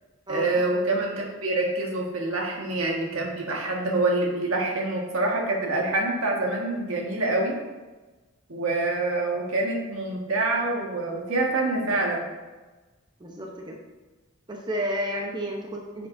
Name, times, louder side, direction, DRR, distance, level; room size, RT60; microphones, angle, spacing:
voice 1, 0.3-7.6 8.5-12.3, right 2 dB, 80° right, -1 dB, 1.6 m, -26 dB
voice 2, 13.2-13.8 14.5-16.1, equal, 20° right, 0 dB, 0.8 m, -31 dB
9.7 x 7.1 x 2.7 m, 1.2 s
head